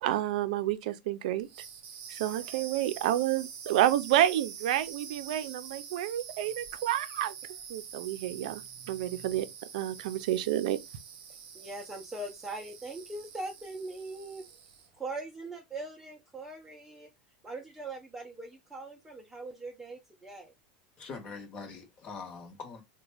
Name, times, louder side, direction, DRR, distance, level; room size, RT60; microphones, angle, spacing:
voice 1, 0.0-1.7 2.1-7.4 7.7-9.5 9.7-10.8, right 12 dB, 70° right, 0.5 m, -29 dB
sound 1, 1.4-14.9, right 7 dB, 40° right, 0.9 m, -46 dB
voice 2, 11.5-14.4 15.0-17.1 17.4-20.5, right 2 dB, 5° right, 0.4 m, -41 dB
voice 3, 21.0-22.8, left 4 dB, 25° left, 0.9 m, -43 dB
3.6 x 2.2 x 3.3 m
supercardioid pair, 165°, 4 cm